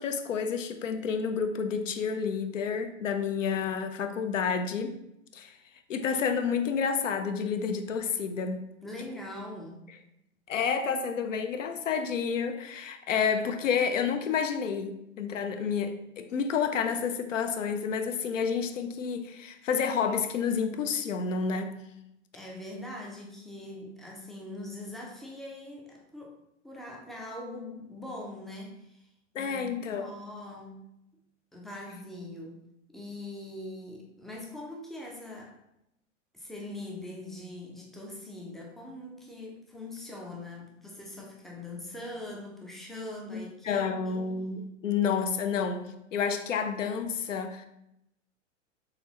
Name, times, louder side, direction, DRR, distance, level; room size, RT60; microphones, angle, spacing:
voice 1, 0.0-5.0 5.3-5.6 5.9-8.7 10.5-21.8 29.3-30.2 43.3-47.7, left 6 dB, 85° left, 7 dB, 0.6 m, -30 dB
voice 2, 8.8-9.9 22.3-26.4 26.6-29.1 29.4-30.8 31.5-32.6 32.9-35.6 36.3-44.2, left 1 dB, ahead, -2 dB, 0.3 m, -42 dB
4.0 x 3.3 x 2.9 m, 0.83 s
hypercardioid pair, 110°, 37 cm